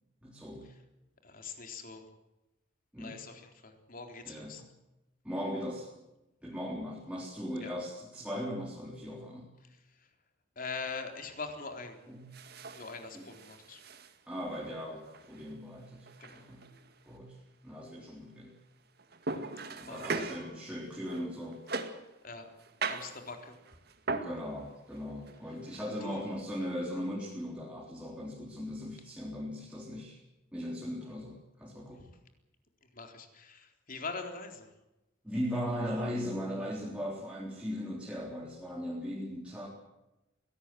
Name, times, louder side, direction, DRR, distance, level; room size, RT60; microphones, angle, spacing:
voice 1, 0.2-0.7 2.9-3.1 4.3-4.7 5.2-5.9 6.4-9.5 12.1-12.3 13.1-13.3 14.3-16.6 17.1-17.4 17.6-18.5 19.3-19.5 19.8-21.6 24.1-30.2 30.5-32.1 35.2-39.7, equal, 5° right, -3 dB, 3.7 m, -38 dB
voice 2, 1.2-2.1 3.0-4.6 7.6-7.7 9.6-10.1 10.6-12.0 12.7-13.8 16.2-16.5 19.9-20.3 22.2-22.5 22.8-23.6 26.0-26.2 32.9-34.7, left 4 dB, 45° left, 5 dB, 4.0 m, -43 dB
sound 1, 10.8-11.3 12.3-14.6 15.0-15.5 16.0-17.2 19.0-22.1 22.6-24.4 24.9-25.9, right 3 dB, 55° right, 2.1 m, -40 dB
23.5 x 18.0 x 7.8 m, 0.96 s
head